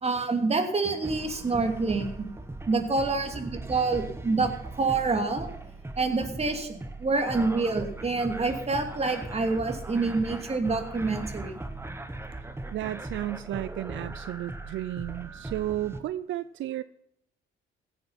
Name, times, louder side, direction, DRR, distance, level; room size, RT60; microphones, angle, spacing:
voice 1, 0.0-2.3 2.7-5.5 6.0-11.5, right 3 dB, 30° right, 6 dB, 2.7 m, -27 dB
sound 1, 1.0-16.0, right 2 dB, 10° right, 1.5 m, -39 dB
voice 2, 12.7-16.8, right 13 dB, 75° right, 15 dB, 0.5 m, -33 dB
16.0 x 8.9 x 5.7 m, 0.74 s
cardioid pair, 90°, 20 cm